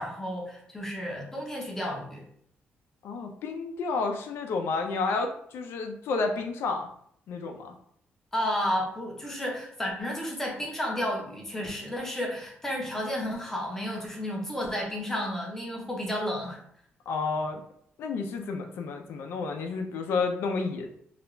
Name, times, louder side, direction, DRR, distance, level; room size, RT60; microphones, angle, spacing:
voice 1, 0.0-2.2 8.3-16.6, equal, 10° left, -1 dB, 0.5 m, -32 dB
voice 2, 3.0-6.9 7.3-7.7 17.1-17.6 18.0-20.9, left 4 dB, 90° left, 4 dB, 0.4 m, -30 dB
2.4 x 2.1 x 2.9 m, 0.66 s
wide cardioid pair, 180°, 4 cm